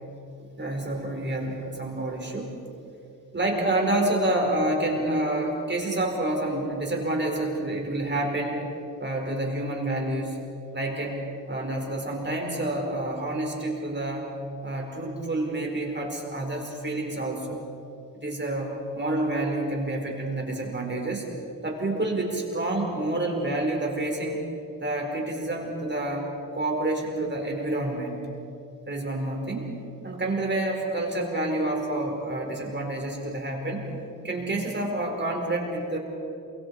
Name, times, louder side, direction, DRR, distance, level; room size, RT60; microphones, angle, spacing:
voice 1, 0.4-2.5 3.3-8.6 9.0-10.4 10.7-11.2 11.5-14.3 14.6-17.6 18.2-21.2 21.6-24.4 24.8-26.3 26.5-28.2 28.9-29.7 30.0-33.8 34.2-36.0, right 1 dB, 30° right, 0 dB, 4.9 m, -28 dB
28.0 x 24.0 x 4.9 m, 2.8 s
cardioid pair, 75°, 35 cm